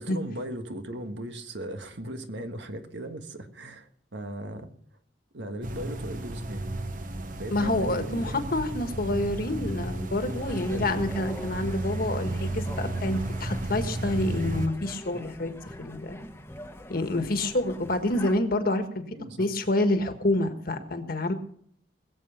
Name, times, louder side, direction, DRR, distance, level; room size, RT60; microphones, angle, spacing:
voice 1, 0.0-3.9 4.1-4.7 5.3-6.7 7.4-8.5 10.5-10.9 19.1-19.5, right 1 dB, 90° right, 7 dB, 1.6 m, -37 dB
sound 1, 5.6-14.7, right 2 dB, 50° right, 1.1 m, -33 dB
voice 2, 7.5-15.5 15.8-16.2 16.9-19.0 19.4-21.3, left 1 dB, 55° left, 7 dB, 1.6 m, -28 dB
sound 2, 10.3-18.4, left 1 dB, 15° left, 1.0 m, -42 dB
21.0 x 7.8 x 5.8 m, 0.64 s
head